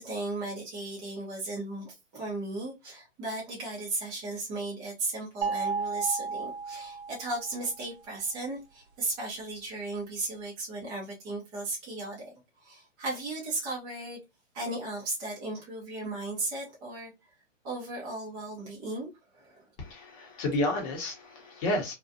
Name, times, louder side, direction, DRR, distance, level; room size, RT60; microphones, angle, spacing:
voice 1, 0.0-12.2 12.6-14.2 14.5-17.1 17.6-19.7, right 2 dB, 10° right, 0.4 m, -35 dB
sound 1, 5.4-7.7, right 5 dB, 60° right, 0.7 m, -33 dB
voice 2, 19.8-21.9, left 1 dB, 25° left, 0.8 m, -31 dB
2.5 x 2.2 x 2.5 m
hypercardioid pair, 145°, 38 cm